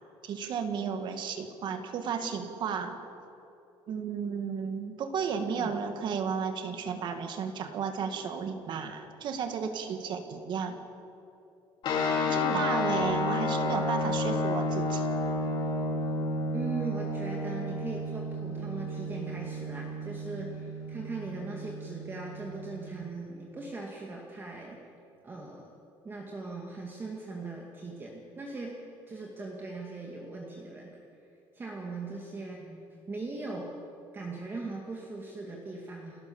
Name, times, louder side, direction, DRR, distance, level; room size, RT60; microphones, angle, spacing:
voice 1, 0.2-3.0 3.9-10.8 12.3-15.1, right 6 dB, 50° right, 7 dB, 2.1 m, -33 dB
voice 2, 5.4-5.7 12.3-12.6 16.5-24.8 25.2-25.7 26.0-28.7 29.1-31.0 31.5-33.7 34.1-36.2, right 3 dB, 20° right, -1 dB, 2.1 m, -39 dB
sound 1, 11.8-23.0, left 2 dB, 55° left, 4.3 m, -31 dB
29.0 x 13.0 x 7.2 m, 2.9 s
cardioid pair, 145°, 10 cm